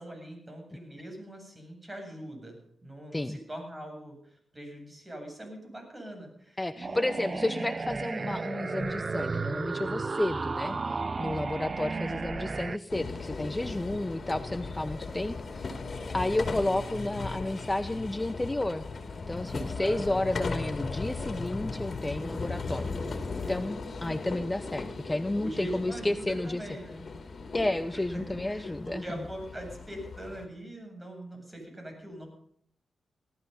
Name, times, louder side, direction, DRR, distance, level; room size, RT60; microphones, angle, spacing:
voice 1, 0.0-7.5 10.6-11.1 19.8-20.3 25.4-27.0 27.9-32.3, right 1 dB, 25° right, 3 dB, 8.0 m, -42 dB
voice 2, 6.6-10.7 11.2-15.8 16.1-18.9 19.3-26.6 27.5-29.0, left 1 dB, 20° left, 12 dB, 0.8 m, -31 dB
sound 1, 6.8-12.8, right 4 dB, 45° right, 0.6 m, -33 dB
sound 2, 12.9-30.5, left 3 dB, 55° left, 2.7 m, -37 dB
18.5 x 13.0 x 5.6 m, 0.66 s
supercardioid pair, 45°, 0 cm